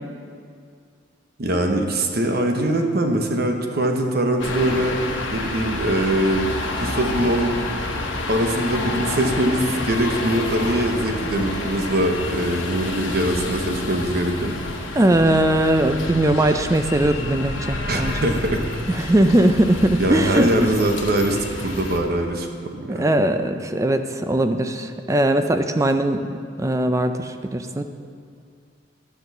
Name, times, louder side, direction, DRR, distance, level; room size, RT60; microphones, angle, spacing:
voice 1, 1.4-5.0 5.3-7.6 8.3-14.5 17.9-18.6 20.0-23.1, right 1 dB, 50° right, 4 dB, 0.9 m, -22 dB
sound 1, 4.4-22.0, left 2 dB, 80° left, 1.2 m, -29 dB
voice 2, 15.0-18.2 18.9-20.7 22.9-27.8, right 1 dB, 15° right, 8 dB, 0.4 m, -20 dB
10.0 x 6.1 x 6.8 m, 2.3 s
head